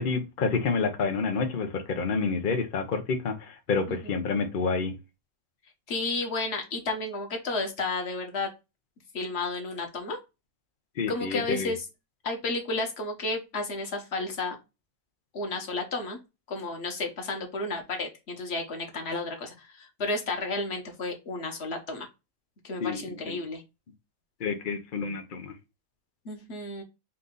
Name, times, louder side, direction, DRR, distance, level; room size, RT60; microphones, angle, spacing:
voice 1, 0.0-4.9 11.0-11.7 22.8-23.0 23.3-23.4 24.4-25.5, left 4 dB, 90° left, 0.4 m, -28 dB
voice 2, 3.9-4.2 5.9-8.5 9.1-10.2 11.1-11.8 12.2-14.6 15.3-16.2 16.5-22.1 22.6-23.6 26.2-26.8, left 3 dB, 40° left, 1.1 m, -32 dB
4.3 x 2.6 x 3.6 m
omnidirectional pair, 1.9 m